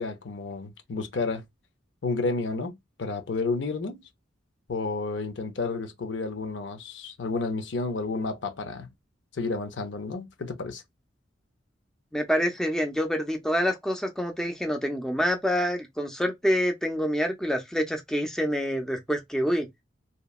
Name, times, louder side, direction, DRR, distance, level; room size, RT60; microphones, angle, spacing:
voice 1, 0.0-1.4 2.0-4.0 4.7-8.9 9.3-10.8, left 3 dB, 70° left, 0.6 m, -31 dB
voice 2, 12.1-19.7, equal, 5° left, 0.5 m, -27 dB
2.8 x 2.2 x 2.3 m
head